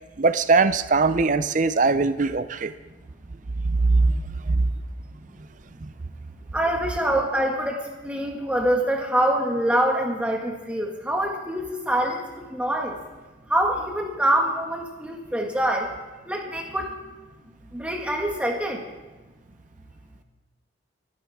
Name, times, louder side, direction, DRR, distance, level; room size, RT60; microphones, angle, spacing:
voice 1, 0.2-2.7 3.7-4.1 4.5-4.6 5.8-5.9, right 3 dB, 40° right, 13 dB, 0.5 m, -20 dB
voice 2, 6.5-13.0 13.5-15.9 16.3-17.0 17.7-18.8, right 1 dB, 5° right, 0 dB, 1.7 m, -25 dB
27.0 x 10.5 x 3.6 m, 1.2 s
head